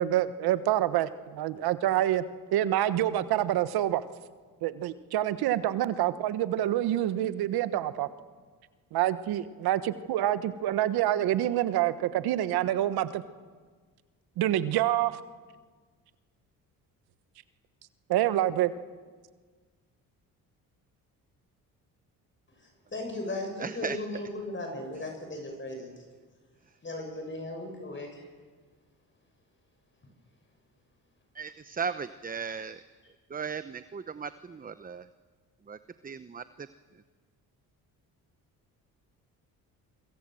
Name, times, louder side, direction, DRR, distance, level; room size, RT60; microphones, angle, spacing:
voice 1, 0.0-2.2 2.5-4.0 4.6-8.1 8.9-13.2 14.4-15.2 18.1-18.7, right 13 dB, 80° right, 13 dB, 1.2 m, -27 dB
voice 2, 22.6-26.0 26.8-28.2, left 2 dB, 30° left, 3 dB, 6.5 m, -37 dB
voice 3, 23.6-24.0 31.3-32.8 33.3-35.1 35.7-36.7, right 6 dB, 25° right, 13 dB, 0.8 m, -37 dB
27.0 x 24.5 x 7.8 m, 1.5 s
supercardioid pair, 75°, 37 cm